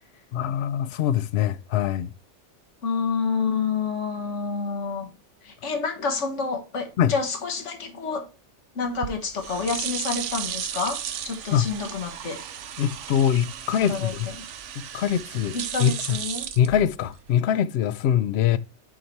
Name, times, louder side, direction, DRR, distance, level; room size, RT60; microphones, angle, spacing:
voice 1, 0.3-2.1 7.0-7.1 11.5-11.7 12.8-14.3 14.9-16.2 16.6-18.6, left 9 dB, 70° left, 0.8 m, -23 dB
voice 2, 2.8-5.1 5.4-8.3 8.8-12.4 13.8-14.4 15.5-16.5, left 5 dB, 85° left, 1.6 m, -28 dB
sound 1, 8.9-17.3, right 9 dB, 80° right, 1.0 m, -35 dB
6.5 x 4.2 x 4.5 m
omnidirectional pair, 1.2 m